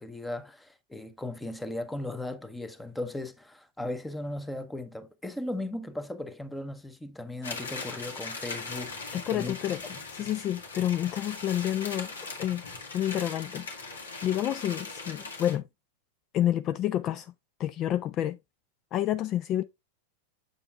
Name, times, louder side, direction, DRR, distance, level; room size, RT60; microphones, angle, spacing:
voice 1, 0.0-9.5 9.9-10.0, left 1 dB, 5° left, 0.9 m, -37 dB
sound 1, 7.4-15.5, left 4 dB, 70° left, 1.6 m, -39 dB
voice 2, 9.1-9.8 10.1-12.1 12.4-12.6 12.9-15.6 16.3-17.3 17.6-18.4 18.9-19.6, left 12 dB, 35° left, 0.3 m, -29 dB
7.8 x 6.8 x 2.4 m
figure-of-eight pair, 90°, 0 cm